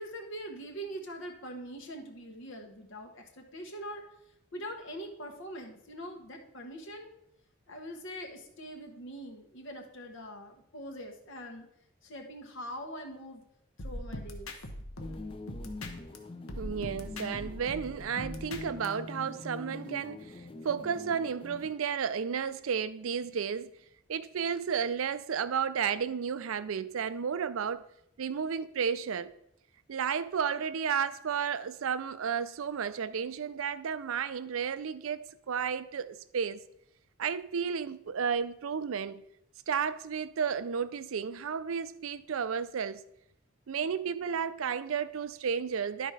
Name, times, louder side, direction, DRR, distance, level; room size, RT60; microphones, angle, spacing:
voice 1, 0.0-4.0 4.5-7.1 7.7-11.7 12.0-13.4 13.8-14.5, equal, 65° left, 1.0 m, -43 dB
sound 1, 13.8-16.2 16.5-18.9, left 1 dB, 90° left, 1.1 m, -41 dB
sound 2, 15.0-21.7, left 2 dB, 25° left, 0.5 m, -44 dB
voice 2, 16.6-20.4 20.6-23.7 24.1-27.9 28.2-29.3 29.9-36.6 37.2-39.2 39.7-43.0 43.7-46.1, right 7 dB, 85° right, 0.4 m, -32 dB
11.5 x 4.3 x 4.8 m
head